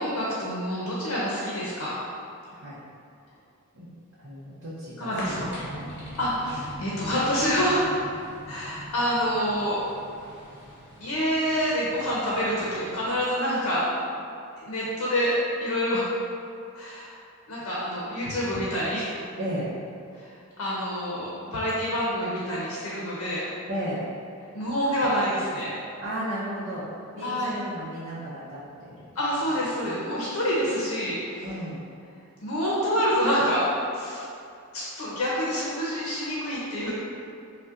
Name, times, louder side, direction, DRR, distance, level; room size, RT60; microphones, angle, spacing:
voice 1, 0.0-2.0 5.0-5.5 6.2-7.8 8.5-9.8 11.0-13.8 14.6-16.1 16.7-17.1 17.5-19.1 20.2-23.4 24.5-25.8 27.2-27.6 29.2-31.4 32.4-33.7 33.9-34.3 34.7-36.9, equal, 75° left, -6 dB, 0.6 m, -27 dB
voice 2, 2.5-2.8 3.7-3.9 4.2-5.9 19.4-19.8 23.7-24.1 26.0-26.9 27.1-29.1 29.8-30.1 31.4-31.8, equal, 60° right, -10 dB, 0.6 m, -34 dB
sound 1, 5.2-13.2, equal, 50° left, 1.0 m, -42 dB
5.3 x 2.2 x 2.4 m, 2.5 s
head